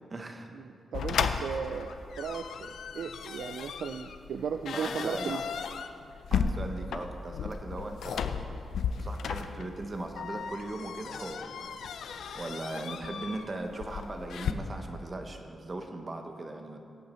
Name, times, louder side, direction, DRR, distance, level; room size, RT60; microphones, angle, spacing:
voice 1, 0.1-0.5 4.7-5.4 6.3-8.5 9.0-16.8, right 2 dB, 30° right, 5 dB, 1.0 m, -39 dB
sound 1, 0.9-14.5, left 6 dB, 80° left, 0.5 m, -35 dB
voice 2, 0.9-5.4, right 6 dB, 80° right, 7 dB, 0.4 m, -36 dB
17.0 x 8.3 x 4.3 m, 2.5 s
wide cardioid pair, 140°, 0 cm